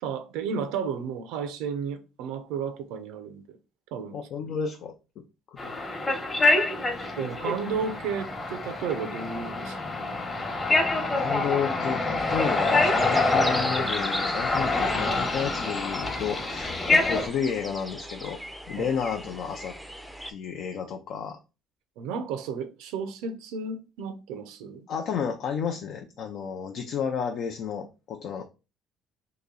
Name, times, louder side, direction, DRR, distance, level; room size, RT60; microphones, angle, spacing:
voice 1, 0.0-3.6 3.9-4.2 7.2-9.8 18.8-18.9 22.0-24.9, right 6 dB, 90° right, 0.5 m, -33 dB
voice 2, 4.1-5.2 5.5-5.7 6.1-6.2 11.1-18.4 18.7-19.8 20.3-21.4 24.9-28.4, left 7 dB, 65° left, 0.5 m, -32 dB
sound 1, 5.6-17.3, left 2 dB, 25° left, 1.0 m, -26 dB
sound 2, 12.2-20.3, equal, ahead, 0.5 m, -38 dB
3.0 x 2.7 x 3.8 m
cardioid pair, 105°, 0 cm